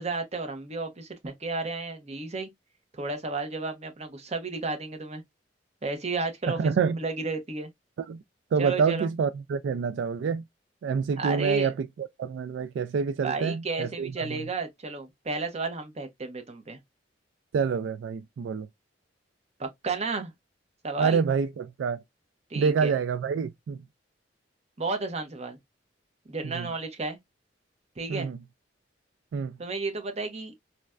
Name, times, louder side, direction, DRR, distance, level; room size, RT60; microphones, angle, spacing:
voice 1, 0.0-2.5 3.0-5.2 5.8-7.7 8.6-9.1 11.2-11.7 13.2-16.8 19.6-20.3 20.8-21.2 22.5-23.0 24.8-25.6 26.3-27.2 28.0-28.3 29.6-30.5, right 3 dB, 35° right, 0.8 m, -32 dB
voice 2, 6.6-7.0 8.1-8.2 8.5-10.4 10.8-14.4 17.5-18.7 21.0-22.0 22.6-23.8 26.4-26.7 28.1-28.4 29.3-29.6, right 6 dB, 90° right, 0.3 m, -27 dB
4.1 x 2.1 x 2.3 m
head